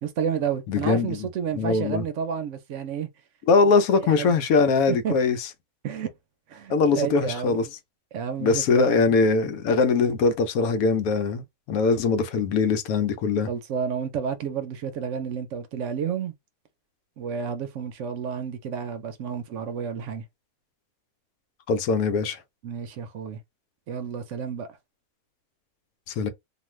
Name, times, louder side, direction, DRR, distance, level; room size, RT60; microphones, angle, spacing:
voice 1, 0.0-3.1 4.0-4.4 4.9-5.1 5.8-6.1 6.5-7.6 8.1-9.0 13.5-16.3 17.2-20.2 22.6-23.4 23.9-24.7, right 7 dB, 65° right, 0.8 m, -30 dB
voice 2, 0.7-1.2 1.6-2.1 3.5-5.4 6.7-7.7 8.4-13.5 21.7-22.4 26.1-26.3, left 4 dB, 85° left, 1.1 m, -22 dB
2.5 x 2.4 x 3.0 m
omnidirectional pair, 1.5 m